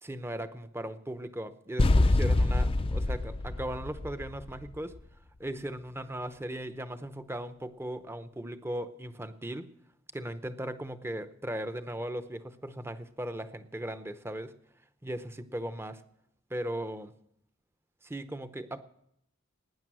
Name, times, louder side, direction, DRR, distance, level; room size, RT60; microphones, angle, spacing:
voice 1, 0.0-5.0 5.4-9.7 10.1-14.6 15.0-16.0 16.5-17.1 18.0-18.8, right 1 dB, 10° right, 11 dB, 0.7 m, -38 dB
sound 1, 1.8-4.7, left 2 dB, 25° left, 0.5 m, -25 dB
18.5 x 9.7 x 6.2 m, 0.76 s
head